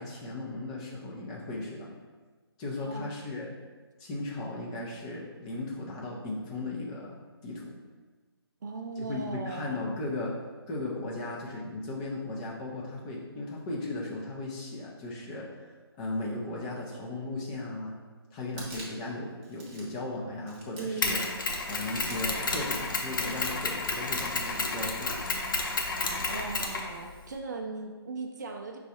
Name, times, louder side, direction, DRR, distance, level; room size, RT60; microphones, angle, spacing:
voice 1, 0.0-1.9 2.6-3.5 4.0-7.2 7.4-7.8 9.0-10.3 10.7-17.9 18.3-21.2 21.7-25.1, left 2 dB, 15° left, -3 dB, 0.5 m, -36 dB
voice 2, 2.8-3.1 8.6-9.8 20.8-21.4 26.3-28.8, right 3 dB, 45° right, 3 dB, 0.5 m, -38 dB
sound 1, 18.4-19.1 19.4-20.0 20.5-21.2 21.7-22.4 23.0-23.6 24.2-24.9 25.2-25.8, right 2 dB, 20° right, 0.9 m, -48 dB
Mechanisms, 21.0-27.3, left 3 dB, 50° left, 0.7 m, -31 dB
5.1 x 2.4 x 4.2 m, 1.4 s
figure-of-eight pair, 155°, 14 cm